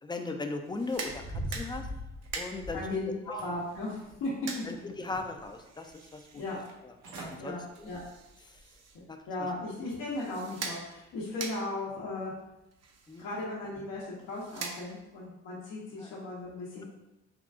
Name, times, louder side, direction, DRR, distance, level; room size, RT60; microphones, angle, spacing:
voice 1, 0.0-1.9 2.3-2.8 3.3-3.4 4.6-6.4 6.8-7.9 8.5-8.6 9.1-9.2 13.1-13.3 16.0-16.1, left 3 dB, 15° left, 5 dB, 0.4 m, -38 dB
sound 1, 0.6-15.3, right 4 dB, 55° right, 0.6 m, -45 dB
sound 2, 0.9-2.9 3.4-4.2 4.6-5.5 5.9-6.0 6.7-6.8 7.0-7.4 7.8-8.1 8.6-8.7, equal, 85° right, 0.9 m, -41 dB
voice 2, 2.7-4.3 6.3-6.6 7.4-8.0 9.3-12.3 13.2-16.8, left 2 dB, 75° left, -7 dB, 0.9 m, -36 dB
3.7 x 2.3 x 3.6 m, 0.93 s
cardioid pair, 90°, 30 cm